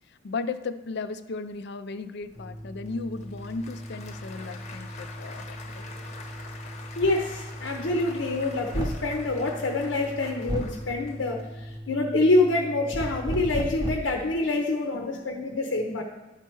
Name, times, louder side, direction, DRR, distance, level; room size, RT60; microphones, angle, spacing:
voice 1, 0.1-5.9 14.9-15.3, left 4 dB, 60° left, 11 dB, 0.4 m, -36 dB
Applause / Crowd, 2.2-11.8, left 3 dB, 40° left, 0.9 m, -46 dB
sound 1, 2.4-13.8, equal, 5° left, 0.8 m, -41 dB
voice 2, 7.0-16.0, left 2 dB, 85° left, 1 dB, 0.8 m, -26 dB
sound 2, 7.0-7.2 8.7-9.1 10.5-10.8 12.9-14.2, right 1 dB, 20° right, 0.4 m, -31 dB
11.5 x 4.5 x 4.6 m, 1.0 s
head